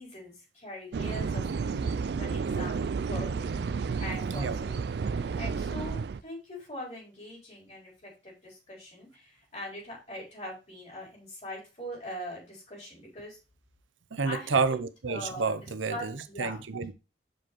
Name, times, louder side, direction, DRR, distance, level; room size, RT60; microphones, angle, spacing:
voice 1, 0.0-3.6 4.0-13.4 14.2-14.6 15.1-15.5 15.9-16.6, left 1 dB, 35° left, 4.5 m, -42 dB
sound 1, 0.9-6.2, right 5 dB, 60° right, 0.3 m, -31 dB
voice 2, 14.1-16.9, right 4 dB, 90° right, 0.7 m, -30 dB
6.3 x 5.1 x 4.2 m
head